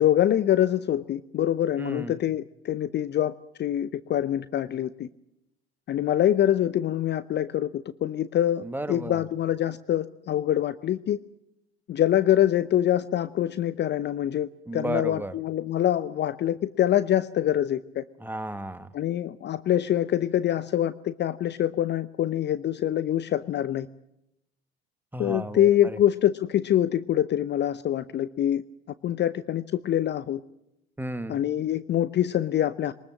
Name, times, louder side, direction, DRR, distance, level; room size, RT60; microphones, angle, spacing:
voice 1, 0.0-3.3 3.6-5.1 5.9-11.2 11.9-18.0 18.9-23.9 25.2-28.6 29.0-30.4 31.3-32.9, left 11 dB, 35° left, 16 dB, 0.8 m, -25 dB
voice 2, 1.8-2.2 8.6-9.2 14.7-15.3 18.2-18.9 25.1-26.0 31.0-31.4, right 1 dB, 5° right, 11 dB, 1.7 m, -33 dB
22.5 x 20.0 x 7.6 m, 0.84 s
figure-of-eight pair, 65°, 31 cm